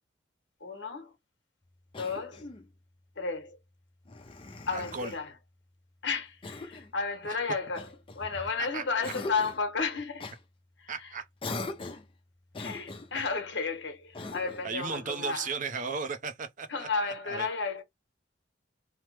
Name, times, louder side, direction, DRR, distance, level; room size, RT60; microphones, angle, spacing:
voice 1, 0.6-1.1 2.0-2.4 3.2-3.6 4.7-5.3 6.0-7.8 8.1-10.3 10.8-10.9 12.6-15.5 16.7-17.8, left 4 dB, 65° left, 1.0 m, -32 dB
Cough, 1.9-2.7 4.0-5.2 6.4-6.9 7.7-8.6 9.0-9.7 10.2-10.4 11.4-12.1 12.5-13.3 14.1-14.7, left 2 dB, 25° left, 0.6 m, -41 dB
voice 2, 4.7-5.1 7.3-7.4 8.6-9.1 10.9-11.3 14.6-16.9 17.2-17.5, right 5 dB, 45° right, 0.5 m, -36 dB
3.1 x 2.0 x 3.1 m
head